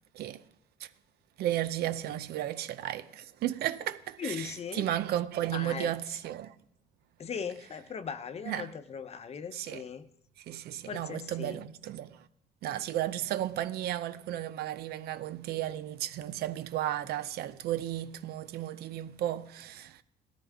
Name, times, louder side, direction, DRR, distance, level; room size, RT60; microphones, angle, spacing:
voice 1, 1.4-6.6 8.5-8.7 9.5-9.8 10.4-12.3 12.6-20.0, right 12 dB, 70° right, 0.7 m, -34 dB
voice 2, 4.2-4.9 5.5-5.9 7.2-10.1 10.8-11.6, left 6 dB, 40° left, 0.9 m, -39 dB
17.5 x 13.5 x 3.6 m
cardioid pair, 110°, 17 cm